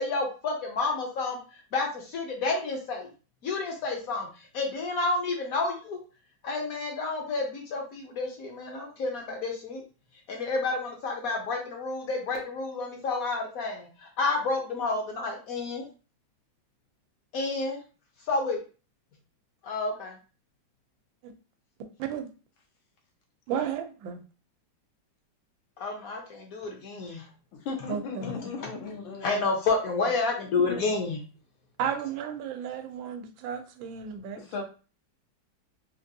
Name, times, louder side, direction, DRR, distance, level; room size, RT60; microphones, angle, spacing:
voice 1, 0.0-3.1 3.4-6.0 6.4-9.8 10.3-15.8 17.3-17.8 18.3-18.6 19.6-20.2 25.8-27.2 29.2-31.2, left 3 dB, 65° left, 0.9 m, -30 dB
voice 2, 23.5-24.2 27.9-28.4 31.8-34.6, right 8 dB, 85° right, 1.4 m, -33 dB
voice 3, 27.6-29.5 30.7-30.8 34.4-34.6, left 5 dB, 90° left, 1.6 m, -36 dB
3.9 x 2.6 x 2.6 m
omnidirectional pair, 2.1 m